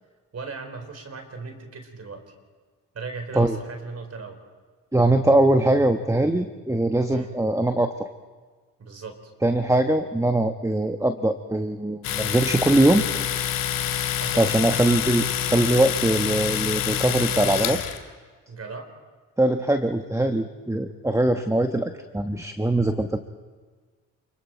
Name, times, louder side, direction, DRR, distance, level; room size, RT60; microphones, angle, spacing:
voice 1, 0.3-2.3 2.9-4.4 7.1-7.3 8.8-9.2 14.2-14.5 18.5-18.9, right 4 dB, 50° right, 6 dB, 4.3 m, -37 dB
voice 2, 4.9-8.1 9.4-13.0 14.4-17.8 19.4-23.2, right 1 dB, 10° right, 7 dB, 1.2 m, -22 dB
Domestic sounds home sounds, 12.0-18.0, left 10 dB, 80° left, 1.8 m, -26 dB
28.5 x 22.0 x 4.6 m, 1.5 s
supercardioid pair, 55°, 32 cm